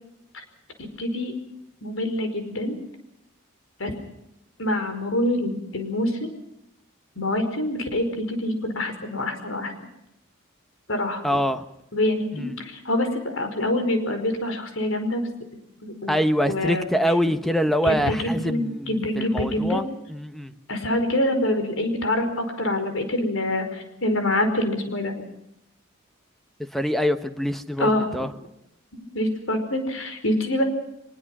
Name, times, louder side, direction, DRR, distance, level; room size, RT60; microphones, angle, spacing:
voice 1, 0.8-1.3 1.8-2.7 3.8-3.9 4.6-6.3 7.1-9.7 10.9-11.2 11.9-15.2 15.8-16.2 16.4-16.9 17.8-19.8 20.7-25.1 27.8-28.3 29.1-30.6, left 1 dB, 75° left, 7 dB, 5.0 m, -25 dB
voice 2, 11.2-11.6 12.3-12.5 16.1-20.5 26.7-28.3, equal, ahead, 8 dB, 1.1 m, -25 dB
24.0 x 22.0 x 6.2 m, 0.82 s
head